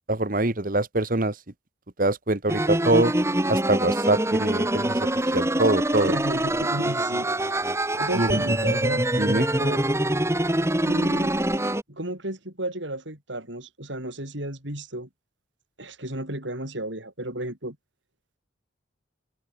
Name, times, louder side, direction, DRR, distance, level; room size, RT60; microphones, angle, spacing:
voice 1, 0.1-1.3 2.0-3.1 3.5-6.1 8.2-8.4 9.2-9.5, right 2 dB, 45° right, 1.6 m, -24 dB
sound 1, 2.5-11.8, right 1 dB, 15° right, 1.6 m, -24 dB
voice 2, 5.9-7.7 8.0-9.0 9.6-9.8 10.8-11.4 11.9-15.1 15.8-17.8, right 1 dB, 70° right, 7.9 m, -33 dB
head